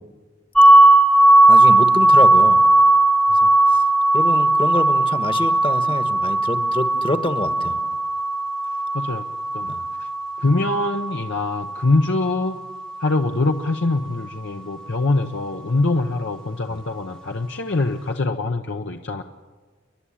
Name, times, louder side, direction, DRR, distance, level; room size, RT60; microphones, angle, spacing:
sound 1, 0.6-12.3, right 2 dB, 5° left, 0.9 m, -17 dB
voice 1, 1.5-2.6 3.3-3.8 4.1-7.8 9.7-9.8 16.7-16.8, left 1 dB, 25° left, 9 dB, 1.2 m, -26 dB
voice 2, 8.9-9.2 9.5-9.7 10.0-10.1 10.4-12.6 13.0-19.2, left 2 dB, 65° left, 4 dB, 0.8 m, -23 dB
29.5 x 11.5 x 8.6 m, 1.4 s
head